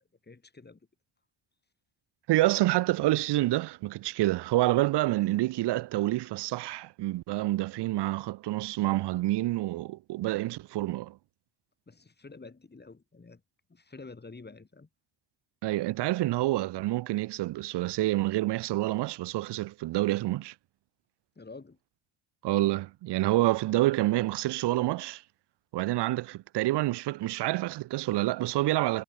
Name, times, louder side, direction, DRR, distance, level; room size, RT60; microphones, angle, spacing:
voice 1, 0.2-0.8 11.9-13.4 13.7-14.9 21.4-21.8, left 3 dB, 20° left, 5.4 m, -48 dB
voice 2, 2.3-11.2 15.6-20.5 22.4-25.2 25.7-29.0, right 17 dB, 55° right, 0.6 m, -28 dB
cardioid pair, 105°, 48 cm